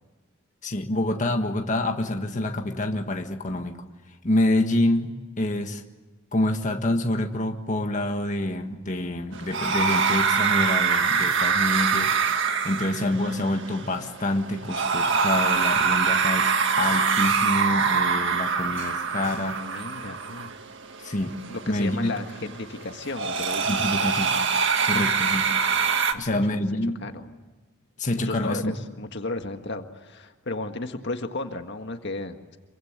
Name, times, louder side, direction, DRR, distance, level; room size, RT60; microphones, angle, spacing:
voice 1, 0.6-3.8 4.2-5.8 6.3-12.2 12.6-19.7 21.0-21.4 21.7-22.1 23.7-24.4 24.8-25.6 26.2-27.0 28.0-28.7, left 1 dB, 35° left, 4 dB, 1.7 m, -27 dB
sound 1, 9.3-26.1, right 5 dB, 55° right, 1.8 m, -25 dB
voice 2, 19.6-20.5 21.5-24.2 26.1-26.6 27.0-27.3 28.2-32.6, left 2 dB, 55° left, 6 dB, 1.7 m, -34 dB
27.5 x 24.0 x 8.1 m, 1.3 s
head